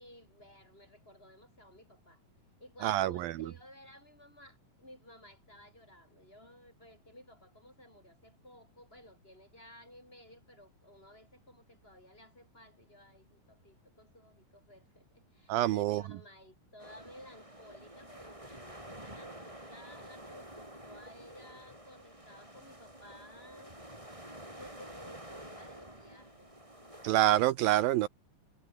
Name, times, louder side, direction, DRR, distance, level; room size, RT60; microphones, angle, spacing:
voice 1, 0.0-2.2 2.6-23.8 24.5-26.5 26.8-27.1, left 1 dB, 15° left, 7.6 m, -55 dB
voice 2, 2.8-3.3 15.5-16.0 27.0-28.1, right 14 dB, 80° right, 2.5 m, -26 dB
sound 1, 16.8-27.4, right 1 dB, 10° right, 6.3 m, -50 dB
omnidirectional pair, 4.4 m